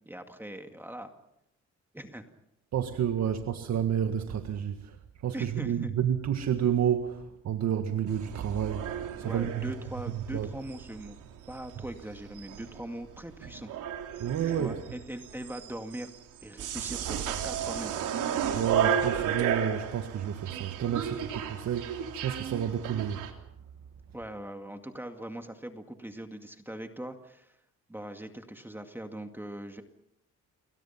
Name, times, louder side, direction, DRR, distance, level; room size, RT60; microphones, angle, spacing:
voice 1, 0.1-1.1 1.9-2.3 5.3-5.9 9.2-11.2 11.5-13.7 14.6-16.1 16.4-17.9 24.1-27.6 27.9-29.8, right 1 dB, 5° right, 5 dB, 2.2 m, -41 dB
voice 2, 2.7-5.0 5.2-9.7 10.3-10.5 14.2-14.8 18.5-23.2, right 9 dB, 65° right, 6 dB, 1.9 m, -30 dB
sound 1, 8.1-23.3, right 8 dB, 85° right, 3.4 m, -34 dB
29.0 x 22.5 x 5.9 m, 0.78 s
cardioid pair, 90°, 30 cm